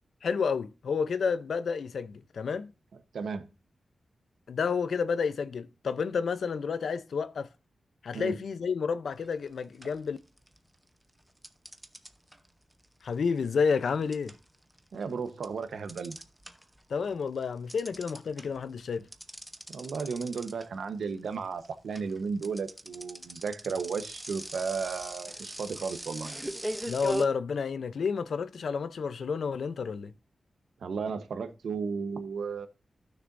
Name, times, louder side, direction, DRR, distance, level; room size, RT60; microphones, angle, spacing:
voice 1, 0.2-2.7 4.5-7.5 8.0-10.2 13.0-14.3 16.9-19.1 26.9-30.1, left 5 dB, 70° left, 0.7 m, -30 dB
voice 2, 3.1-3.5 8.1-8.4 14.9-16.2 19.7-26.3 30.8-32.7, right 5 dB, 85° right, 1.1 m, -34 dB
sound 1, 9.2-9.5 9.8-10.8 11.4-16.8 17.1-27.3, right 1 dB, 5° right, 0.8 m, -40 dB
15.5 x 6.5 x 2.6 m
wide cardioid pair, 135°, 0 cm